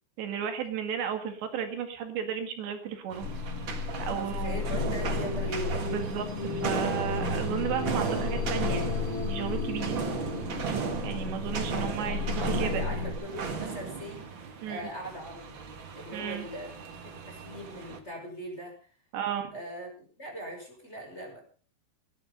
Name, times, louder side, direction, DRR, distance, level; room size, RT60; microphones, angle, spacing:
voice 1, 0.2-3.3 4.0-4.6 5.8-8.9 9.2-10.0 11.0-12.8 14.6-14.9 16.1-16.5 19.1-19.5, right 9 dB, 75° right, 7 dB, 4.0 m, -34 dB
sound 1, 3.1-18.0, right 5 dB, 50° right, 1.4 m, -35 dB
sound 2, 3.2-13.1, left 5 dB, 55° left, 1.5 m, -33 dB
voice 2, 4.1-5.9 11.7-15.6 16.0-16.7 17.0-18.8 19.5-19.9 20.2-21.4, equal, 15° left, 1 dB, 5.8 m, -40 dB
19.0 x 10.5 x 5.5 m, 0.40 s
omnidirectional pair, 5.1 m